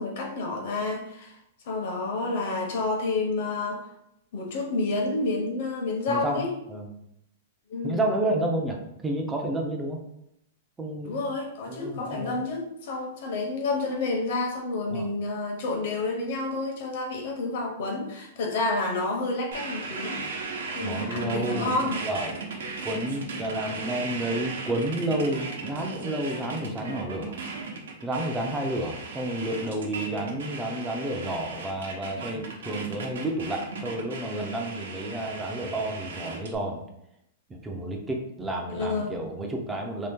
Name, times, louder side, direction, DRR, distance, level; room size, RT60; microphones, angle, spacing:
voice 1, 0.0-1.3 1.6-3.9 4.3-6.5 7.7-8.0 11.0-20.2 20.7-22.0 26.6-26.8 38.7-39.1, left 3 dB, 50° left, 1 dB, 0.9 m, -29 dB
voice 2, 6.1-6.4 6.7-6.9 7.8-10.0 10.8-11.2 11.7-12.4 14.9-15.1 20.8-22.3 22.8-27.3 28.0-36.8 37.5-40.1, right 1 dB, 10° right, 1 dB, 0.5 m, -30 dB
sound 1, 19.5-36.6, right 4 dB, 90° right, 0.9 m, -36 dB
2.9 x 2.8 x 3.5 m, 0.78 s
supercardioid pair, 170°, 0 cm